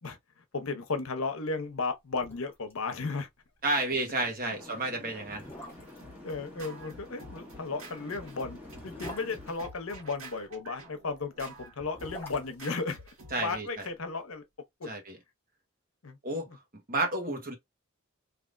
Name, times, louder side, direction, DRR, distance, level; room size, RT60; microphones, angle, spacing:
voice 1, 0.0-3.3 4.4-4.5 6.2-13.0 13.4-14.4 14.8-14.9 16.0-16.2, left 4 dB, 80° left, 0.9 m, -35 dB
sound 1, 1.8-1.9 2.1-2.8 3.1-3.2 3.6-3.7 4.4-4.5 5.2-6.1 7.6-10.3 11.6-13.8 14.1-14.2, left 1 dB, 10° left, 1.3 m, -46 dB
voice 2, 3.6-5.5 13.3-13.9 14.9-15.2 16.2-16.5 16.9-17.6, right 2 dB, 40° right, 1.2 m, -31 dB
sound 2, 4.5-9.5, left 1 dB, 10° right, 1.1 m, -49 dB
Scratching (performance technique), 5.4-13.9, right 2 dB, 75° right, 1.7 m, -49 dB
3.4 x 2.8 x 2.5 m
head